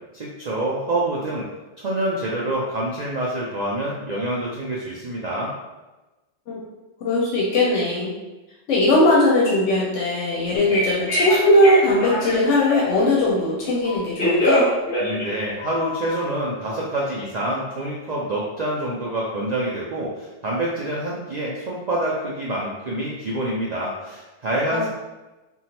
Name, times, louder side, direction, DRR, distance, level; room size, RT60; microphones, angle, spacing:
voice 1, 0.1-1.4 1.8-5.5 15.0-24.9, right 1 dB, 70° right, -5 dB, 0.4 m, -26 dB
voice 2, 7.0-8.1 8.7-14.7 24.7-24.9, left 1 dB, 85° left, -4 dB, 0.9 m, -19 dB
Telephone, 10.6-13.1 13.8-16.2, equal, 50° left, 1.1 m, -24 dB
3.0 x 2.3 x 2.8 m, 1.1 s
omnidirectional pair, 1.2 m